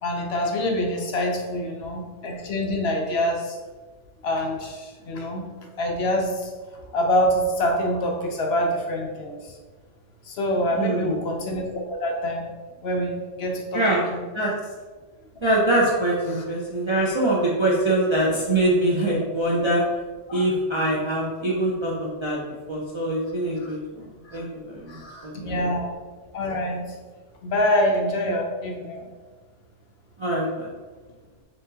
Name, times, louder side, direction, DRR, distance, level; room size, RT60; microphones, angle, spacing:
voice 1, 0.0-3.6 4.2-5.4 5.8-6.5 6.9-9.6 10.3-12.5 12.8-14.2 16.3-16.4 20.3-20.5 23.6-23.8 24.2-24.4 24.9-26.0 26.3-26.8 27.4-29.1, left 1 dB, 65° left, 1 dB, 0.8 m, -26 dB
voice 2, 10.7-11.2 13.7-14.0 14.3-14.5 15.4-19.8 20.3-22.4 22.7-25.6 30.2-30.7, right 1 dB, 40° right, -5 dB, 0.4 m, -24 dB
4.1 x 3.7 x 2.7 m, 1.3 s
omnidirectional pair, 1.3 m